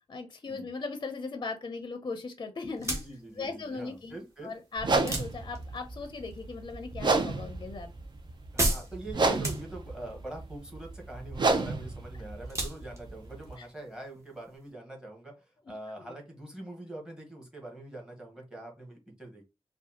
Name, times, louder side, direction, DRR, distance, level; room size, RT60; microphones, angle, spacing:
voice 1, 0.1-3.0 3.4-4.2 4.4-7.9 13.6-13.7 16.0-16.1, left 4 dB, 40° left, 7 dB, 0.5 m, -38 dB
sound 1, 2.7-14.7, right 1 dB, 30° right, 1.1 m, -38 dB
voice 2, 2.8-4.5 8.5-19.4, right 2 dB, 5° right, 0 dB, 1.3 m, -44 dB
sound 2, 4.8-13.5, right 3 dB, 45° right, 0.6 m, -32 dB
4.9 x 2.3 x 2.8 m, 0.26 s
wide cardioid pair, 160°, 10 cm